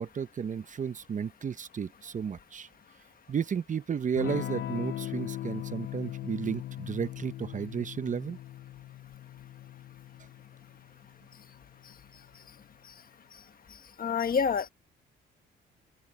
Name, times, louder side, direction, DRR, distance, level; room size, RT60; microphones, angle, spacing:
voice 1, 0.0-2.7 3.3-8.4, right 7 dB, 40° right, 0.8 m, -33 dB
Electric guitar / Strum, 4.2-12.5, left 13 dB, 65° left, 0.6 m, -40 dB
voice 2, 14.0-14.7, left 6 dB, 45° left, 1.5 m, -27 dB
open air
cardioid pair, 90°, 20 cm